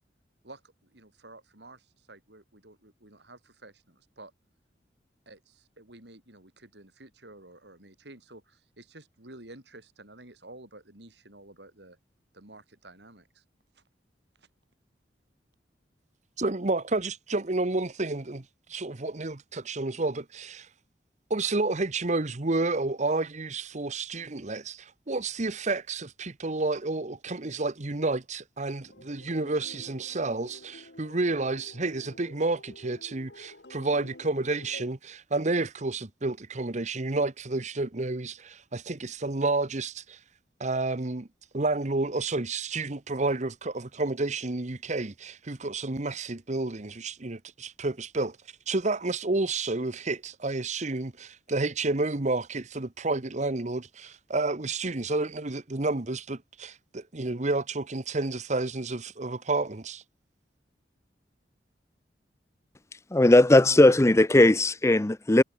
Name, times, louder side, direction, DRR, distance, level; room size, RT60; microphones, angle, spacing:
voice 1, 0.4-4.3 5.3-12.0 12.3-13.4 13.7-13.8 14.4-14.5, right 2 dB, 70° right, 6.0 m, -51 dB
voice 2, 16.4-18.4 18.7-20.7 21.3-40.2 40.6-41.3 41.5-48.4 48.7-60.0, right 2 dB, 40° right, 1.1 m, -30 dB
sound 1, 28.9-34.9, left 1 dB, 65° left, 3.6 m, -50 dB
voice 3, 63.1-65.4, left 1 dB, 15° left, 0.5 m, -18 dB
head